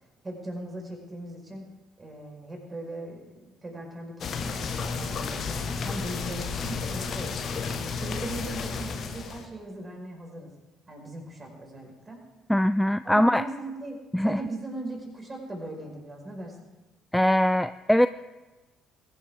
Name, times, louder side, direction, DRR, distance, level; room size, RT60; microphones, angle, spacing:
voice 1, 0.2-1.7 2.0-10.5 10.9-12.2 13.0-14.0 14.2-16.6, right 1 dB, 25° right, 1 dB, 4.8 m, -39 dB
sound 1, 4.2-9.5, left 5 dB, 45° left, 1.4 m, -32 dB
voice 2, 12.5-13.4 14.1-14.4 17.1-18.1, equal, 5° left, 13 dB, 0.3 m, -22 dB
21.5 x 11.0 x 3.6 m, 1.1 s
figure-of-eight pair, 50°, 0 cm